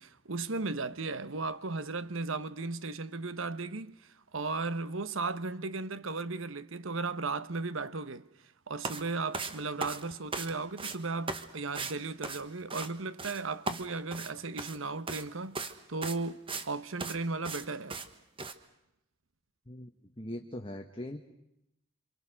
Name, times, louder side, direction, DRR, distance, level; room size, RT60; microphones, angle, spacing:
voice 1, 0.0-8.3 8.7-18.0, right 3 dB, 70° right, 1.1 m, -36 dB
sound 1, 8.8-9.0 9.3-10.5 10.8-11.0 11.3-11.5 11.7-11.9 12.2-12.9 13.2-13.4 13.7-14.8 15.1-15.2 15.5-15.7 16.0-16.7 17.0-17.2 17.4-17.6 17.9-18.1 18.4-18.5, right 4 dB, 25° right, 1.3 m, -37 dB
voice 2, 20.2-21.2, left 1 dB, 25° left, 1.6 m, -40 dB
27.5 x 26.5 x 6.4 m
head